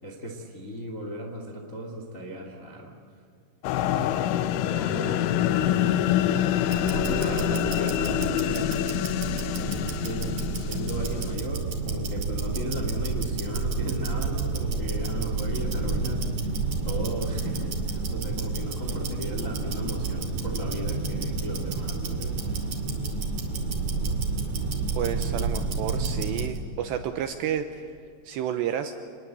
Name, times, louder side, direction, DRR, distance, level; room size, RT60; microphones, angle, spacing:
voice 1, 0.0-2.9 3.8-6.0 6.6-22.4, equal, 35° left, 2 dB, 1.2 m, -36 dB
sound 1, 3.6-11.4, left 11 dB, 80° left, 3.2 m, -26 dB
Tick-tock, 6.6-26.6, right 4 dB, 45° right, 3.1 m, -30 dB
voice 2, 25.0-27.9 28.2-28.9, right 9 dB, 80° right, 8 dB, 2.6 m, -30 dB
28.5 x 20.5 x 8.2 m, 2.4 s
omnidirectional pair, 5.9 m